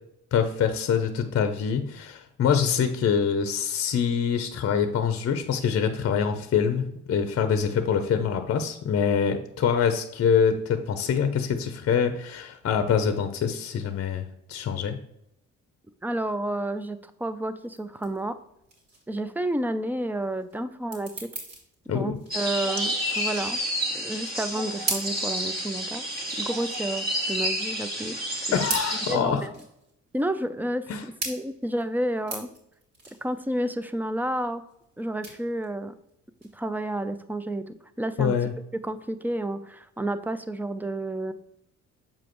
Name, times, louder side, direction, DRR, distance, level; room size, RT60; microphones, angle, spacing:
voice 1, 0.3-15.0 21.9-22.2 28.5-29.4 30.9-31.0 38.2-38.5, left 7 dB, 50° left, 9 dB, 0.7 m, -25 dB
voice 2, 16.0-18.4 19.1-21.3 21.9-23.6 23.9-26.0 26.4-28.2 28.5-28.6 29.1-29.5 30.1-30.9 31.3-32.5 33.2-34.6 35.0-35.9 36.5-38.3 38.8-41.3, right 1 dB, 5° right, 11 dB, 0.5 m, -30 dB
sound 1, 17.6-37.4, right 3 dB, 60° right, 2.6 m, -39 dB
sound 2, 22.3-29.2, equal, 30° right, 1.7 m, -30 dB
7.1 x 5.0 x 3.0 m, 0.78 s
cardioid pair, 90°, 30 cm